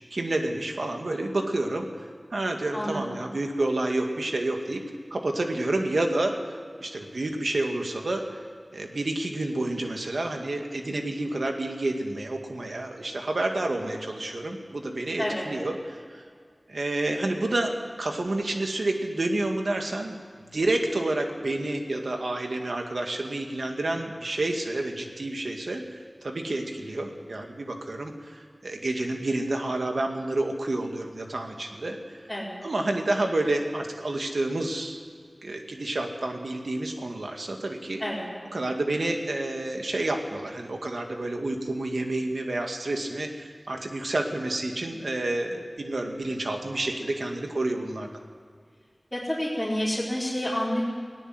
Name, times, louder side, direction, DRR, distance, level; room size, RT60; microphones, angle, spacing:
voice 1, 0.1-1.9 2.3-4.8 5.1-6.4 6.8-8.2 8.7-16.2 16.7-17.7 18.0-20.2 20.5-25.9 26.2-32.2 32.6-35.0 35.4-38.0 38.5-48.1, right 2 dB, 90° right, 3 dB, 2.2 m, -29 dB
voice 2, 2.7-3.2 15.2-15.5 32.3-32.6 38.0-38.3 49.1-50.8, equal, 10° left, -8 dB, 5.0 m, -29 dB
19.0 x 17.5 x 7.9 m, 2.1 s
wide cardioid pair, 40°, 0 cm